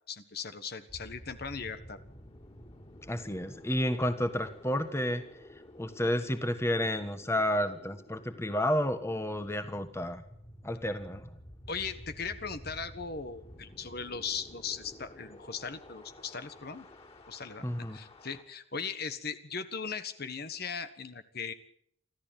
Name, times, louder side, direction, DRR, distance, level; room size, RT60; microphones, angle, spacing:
voice 1, 0.1-2.0 11.7-16.9 17.3-21.5, left 5 dB, 50° left, 11 dB, 1.5 m, -38 dB
sound 1, 0.9-18.4, left 1 dB, 30° left, 4.0 m, -52 dB
voice 2, 3.1-5.2 5.8-10.2 10.6-11.3 17.6-18.0, left 1 dB, 15° left, 9 dB, 1.4 m, -31 dB
24.5 x 14.5 x 9.2 m, 0.71 s
head